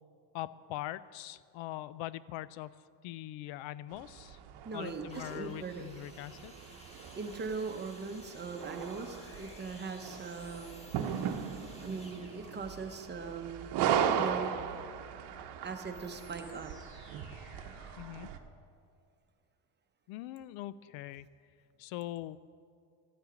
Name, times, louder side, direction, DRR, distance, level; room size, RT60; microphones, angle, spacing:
voice 1, 0.3-2.7 3.0-4.4 4.7-6.5 18.0-18.3 20.1-21.3 21.8-22.4, left 15 dB, 90° left, 18 dB, 0.5 m, -42 dB
sound 1, 3.9-18.4, right 8 dB, 60° right, 0.8 m, -38 dB
voice 2, 4.5-5.8 6.9-10.8 11.8-13.8 14.1-14.5 15.6-16.7, right 4 dB, 25° right, 6 dB, 0.8 m, -40 dB
sound 2, 5.1-14.8 15.5-15.6, equal, 15° left, 1.4 m, -56 dB
sound 3, 8.5-18.4, left 2 dB, 55° left, 1.7 m, -58 dB
13.5 x 9.7 x 5.1 m, 2.2 s
cardioid pair, 145°, 45 cm